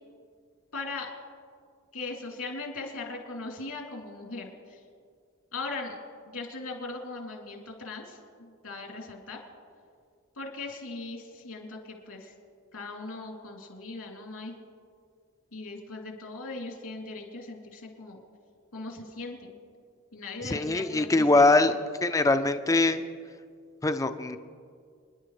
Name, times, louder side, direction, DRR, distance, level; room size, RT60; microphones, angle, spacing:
voice 1, 0.7-1.1 1.9-4.8 5.5-6.0 6.3-9.4 10.4-12.3 12.7-14.5 15.5-18.2 18.7-19.5 20.1-21.4, left 3 dB, 80° left, 0 dB, 2.9 m, -39 dB
voice 2, 20.4-21.7 22.0-23.0 23.8-24.4, left 2 dB, 15° left, 9 dB, 0.4 m, -22 dB
27.5 x 11.0 x 3.3 m, 2.1 s
head